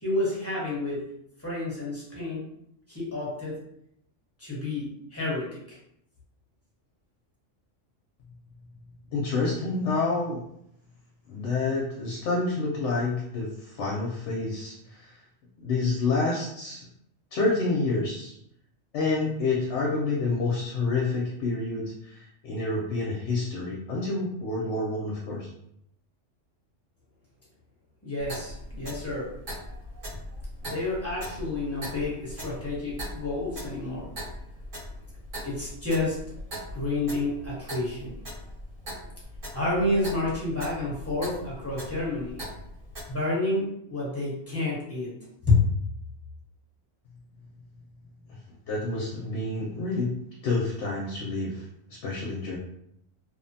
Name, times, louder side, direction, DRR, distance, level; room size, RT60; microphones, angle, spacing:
voice 1, 0.0-1.1 1.4-2.4 2.9-3.6 4.4-5.8 28.0-29.3 30.6-34.1 35.4-36.2 36.7-38.2 39.5-42.4 43.1-45.2 45.4-45.6, left 2 dB, 15° left, -7 dB, 0.9 m, -29 dB
voice 2, 9.1-10.4 11.3-15.2 15.6-16.8 17.3-18.3 18.9-25.5 48.3-48.4 48.7-50.1 50.4-51.6 51.9-52.6, left 3 dB, 70° left, -2 dB, 0.9 m, -28 dB
Clock, 28.2-43.1, equal, 85° right, 1.6 m, -40 dB
2.8 x 2.1 x 2.7 m, 0.75 s
omnidirectional pair, 1.3 m